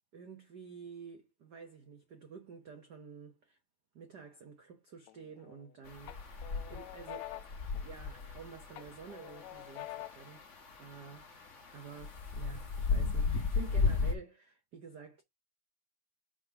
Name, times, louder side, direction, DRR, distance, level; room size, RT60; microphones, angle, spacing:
voice 1, 0.1-3.6 3.9-7.4 7.8-10.4 10.8-11.3 11.7-15.2, right 6 dB, 80° right, 0.9 m, -50 dB
sound 1, 5.1-5.7 6.1-8.4 8.7-10.4, left 16 dB, 80° left, 1.6 m, -47 dB
sound 2, 5.8-14.1, left 4 dB, 50° left, 0.9 m, -36 dB
4.9 x 3.7 x 5.7 m
omnidirectional pair, 3.4 m